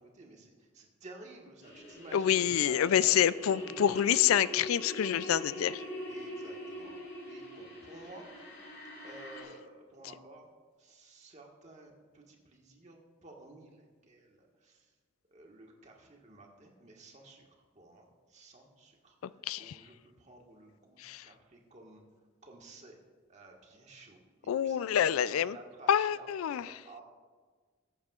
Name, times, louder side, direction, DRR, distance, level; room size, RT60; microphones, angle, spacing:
voice 1, 0.0-3.1 3.5-3.6 6.1-6.9 7.3-8.3 9.0-10.5 10.8-14.9 15.3-17.4 17.7-22.0 22.4-23.0 23.3-27.0, right 2 dB, 35° right, 0 dB, 1.5 m, -53 dB
sound 1, 1.6-9.4, equal, 55° left, 3.5 m, -43 dB
voice 2, 2.1-5.8 19.4-19.8 21.0-21.3 24.5-25.6 25.9-26.8, left 9 dB, 90° left, 18 dB, 0.3 m, -27 dB
19.5 x 8.7 x 2.4 m, 1.5 s
head